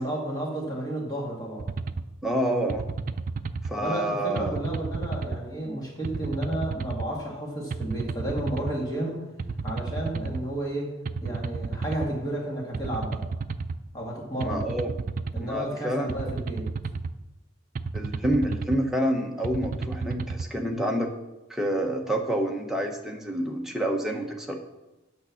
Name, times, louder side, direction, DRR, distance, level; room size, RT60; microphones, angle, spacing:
voice 1, 0.0-1.7 3.8-9.3 9.6-10.9 11.2-13.2 13.9-14.7 15.3-16.7, right 1 dB, 20° left, -2 dB, 1.9 m, -32 dB
sound 1, 1.6-2.0 2.7-3.7 4.4-5.4 6.0-7.1 7.7-8.7 9.4-10.4 11.1-12.1 12.7-13.8 14.4-15.4 16.1-17.1 17.8-18.8 19.4-20.5, right 4 dB, 40° right, 0.4 m, -32 dB
voice 2, 2.2-2.9 3.6-4.6 14.4-14.9 15.4-16.1 17.9-21.1 21.5-24.6, right 1 dB, ahead, 1 dB, 0.9 m, -28 dB
8.8 x 5.4 x 7.1 m, 1.0 s
head